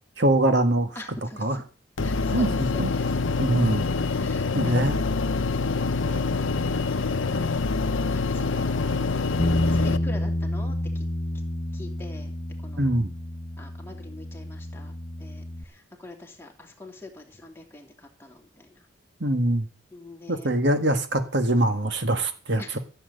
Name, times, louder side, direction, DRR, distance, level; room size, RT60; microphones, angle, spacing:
voice 1, 0.2-0.9 1.4-1.6 2.3-2.5 2.8-2.9 3.4-3.9 4.5-5.1 12.8-13.1 19.2-19.7 20.3-22.8, right 1 dB, 55° right, 7 dB, 1.8 m, -23 dB
voice 2, 0.9-1.6 2.0-3.2 4.0-5.2 8.1-9.0 9.7-11.0 11.7-12.3 12.6-12.9 13.6-14.9 15.2-18.8 19.9-20.5 22.6-22.8, left 2 dB, 10° left, 0 dB, 2.8 m, -44 dB
sound 1, 2.0-10.0, left 4 dB, 70° left, 0.8 m, -26 dB
Bass guitar, 9.4-15.6, left 1 dB, 30° left, 1.3 m, -29 dB
15.0 x 7.7 x 8.1 m, 0.38 s
head